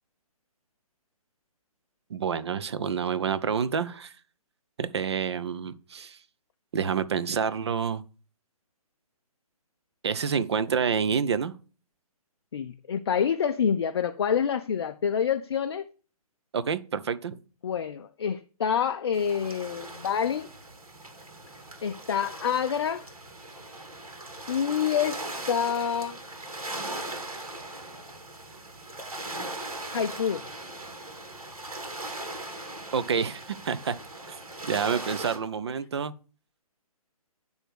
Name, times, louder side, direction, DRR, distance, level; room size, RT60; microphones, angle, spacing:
voice 1, 2.1-4.1 4.8-6.2 6.7-8.0 10.0-11.5 16.5-17.4 32.9-33.9 34.7-36.1, right 6 dB, 45° right, 0.6 m, -28 dB
voice 2, 12.5-15.9 17.6-20.5 21.8-23.1 24.5-26.2 29.9-30.5, left 7 dB, 45° left, 0.4 m, -27 dB
sound 1, 19.1-35.4, right 2 dB, 65° right, 2.5 m, -39 dB
9.8 x 3.5 x 6.2 m
figure-of-eight pair, 135°, 19 cm